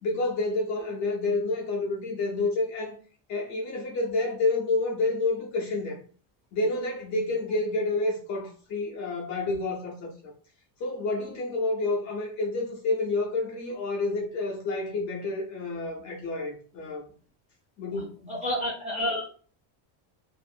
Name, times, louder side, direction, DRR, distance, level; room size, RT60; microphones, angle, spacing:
voice 1, 0.0-3.0 3.3-6.0 6.5-10.3 10.8-17.1 17.8-18.3, left 2 dB, 40° left, 0.4 m, -29 dB
voice 2, 18.3-19.3, left 1 dB, 15° right, 0.6 m, -29 dB
2.5 x 2.4 x 2.6 m
cardioid pair, 180°, 49 cm